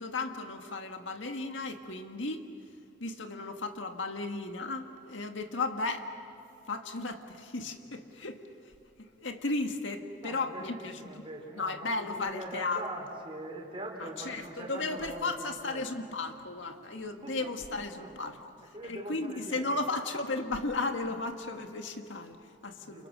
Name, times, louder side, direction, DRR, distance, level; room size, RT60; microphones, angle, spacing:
voice 1, 0.0-2.5 3.0-6.1 6.7-8.7 9.0-11.2 11.6-12.8 14.2-18.4 18.8-23.1, left 3 dB, 90° left, 5 dB, 1.8 m, -35 dB
voice 2, 10.2-15.9 17.2-17.5 17.9-18.2 18.7-19.6 20.0-20.1 22.8-23.1, right 1 dB, 30° right, 0 dB, 4.6 m, -43 dB
30.0 x 29.5 x 6.4 m, 2.5 s
head